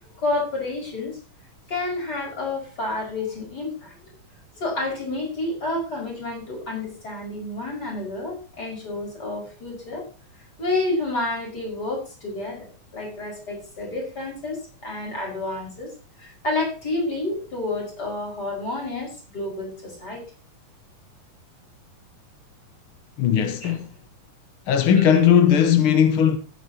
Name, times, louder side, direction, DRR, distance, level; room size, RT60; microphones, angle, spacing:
voice 1, 0.2-1.2 1.7-3.9 4.6-10.1 10.6-12.7 12.9-15.9 16.2-20.2 23.6-23.7 24.9-25.1, left 2 dB, 30° left, 6.0 m, -29 dB
voice 2, 23.2-23.9 24.7-26.4, left 8 dB, 65° left, 1.3 m, -18 dB
15.5 x 10.0 x 2.9 m
omnidirectional pair, 3.7 m